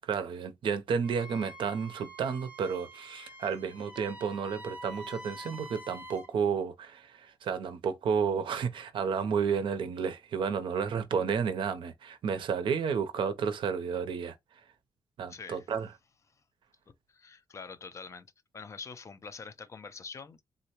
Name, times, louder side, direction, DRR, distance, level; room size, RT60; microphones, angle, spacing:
voice 1, 0.0-14.4 15.2-15.9, right 6 dB, 70° right, 0.6 m, -31 dB
Wind instrument woodwind instrument, 1.0-6.3, equal, 15° right, 1.0 m, -47 dB
voice 2, 15.3-15.6 17.1-18.3 18.5-20.4, left 5 dB, 35° left, 0.4 m, -45 dB
3.7 x 2.1 x 2.8 m
wide cardioid pair, 150°, 9 cm